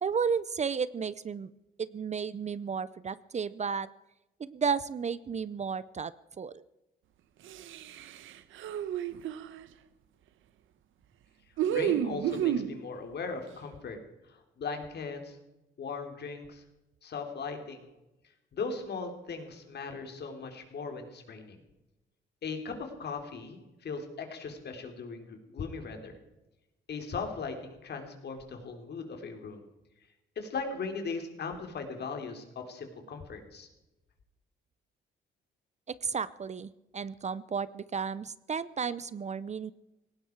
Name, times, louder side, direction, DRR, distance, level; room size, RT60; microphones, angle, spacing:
voice 1, 0.0-1.5 1.8-3.9 4.4-6.6 35.9-39.7, right 6 dB, 35° right, 17 dB, 0.7 m, -33 dB
sound 1, 7.5-9.6 11.6-12.8, right 10 dB, 80° right, 1.1 m, -31 dB
voice 2, 11.7-14.0 14.3-15.4 15.8-16.6 17.0-17.9 18.5-21.6 22.4-26.2 26.9-29.6 30.4-33.7, left 4 dB, 55° left, 5 dB, 3.7 m, -38 dB
18.5 x 16.5 x 4.7 m, 0.96 s
cardioid pair, 90°, 20 cm